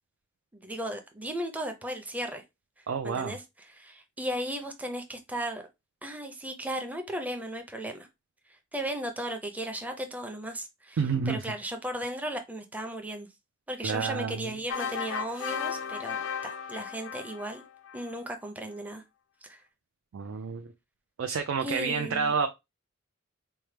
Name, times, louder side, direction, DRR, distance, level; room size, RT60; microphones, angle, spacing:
voice 1, 0.5-2.4 3.0-3.4 3.8-5.6 6.0-8.1 8.7-11.0 11.3-13.3 13.7-17.6 17.9-19.0 19.5-19.6 21.6-22.3, right 1 dB, 10° right, 0.5 m, -35 dB
voice 2, 2.9-3.4 11.0-11.5 13.8-14.6 20.1-20.7 21.2-22.5, right 5 dB, 75° right, 0.4 m, -29 dB
sound 1, 14.7-18.2, left 7 dB, 70° left, 0.4 m, -35 dB
4.4 x 2.1 x 3.2 m
head